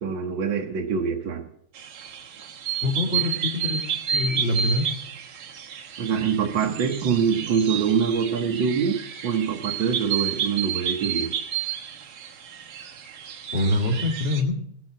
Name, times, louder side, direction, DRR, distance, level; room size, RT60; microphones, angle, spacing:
voice 1, 0.0-1.5 6.0-11.4, right 6 dB, 60° right, 1 dB, 1.8 m, -24 dB
sound 1, 1.7-14.4, right 8 dB, 85° right, 2.2 m, -31 dB
voice 2, 2.8-3.8 4.1-4.9 13.5-14.6, left 2 dB, 25° left, 1 dB, 2.1 m, -24 dB
17.0 x 6.3 x 7.4 m, 0.69 s
omnidirectional pair, 2.4 m